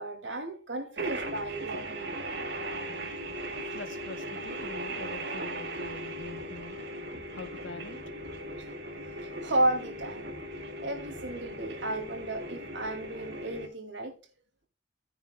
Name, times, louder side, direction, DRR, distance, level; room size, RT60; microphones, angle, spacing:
voice 1, 0.0-2.2 8.6-8.7 9.2-10.3 10.8-14.2, right 1 dB, 75° right, 2.5 m, -33 dB
sound 1, 1.0-13.7, right 1 dB, 60° right, 2.0 m, -38 dB
voice 2, 3.7-6.8 7.3-8.0, left 3 dB, 90° left, 1.2 m, -44 dB
14.5 x 9.4 x 2.3 m
head